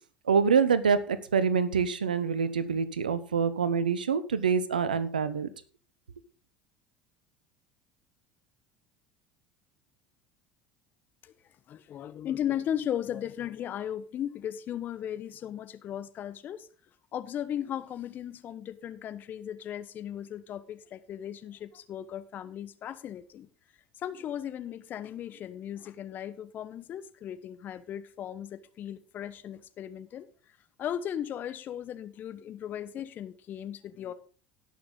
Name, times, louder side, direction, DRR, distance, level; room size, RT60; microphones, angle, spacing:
voice 1, 0.3-5.5, right 6 dB, 85° right, 0.9 m, -26 dB
voice 2, 11.7-16.7 17.1-23.5 24.0-30.3 30.8-34.1, left 10 dB, 45° left, 1.1 m, -36 dB
17.5 x 6.5 x 3.9 m
hypercardioid pair, 70°, 4 cm